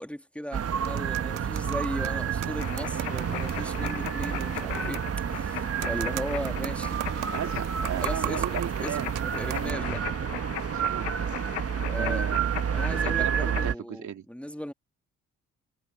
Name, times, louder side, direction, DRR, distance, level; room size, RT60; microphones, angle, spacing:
voice 1, 0.0-7.5 8.0-8.5 8.8-9.0 9.4-10.0 11.9-12.2 12.7-14.7, equal, 5° left, 2.3 m, -37 dB
sound 1, 0.5-13.7, right 7 dB, 45° right, 1.5 m, -30 dB
sound 2, 0.5-9.7, right 16 dB, 80° right, 1.6 m, -40 dB
sound 3, 2.6-13.7, left 24 dB, 90° left, 0.6 m, -39 dB
voice 2, 7.3-9.8 10.7-11.1 12.0-12.5 12.9-14.2, right 9 dB, 60° right, 2.8 m, -36 dB
hypercardioid pair, 50°, 32 cm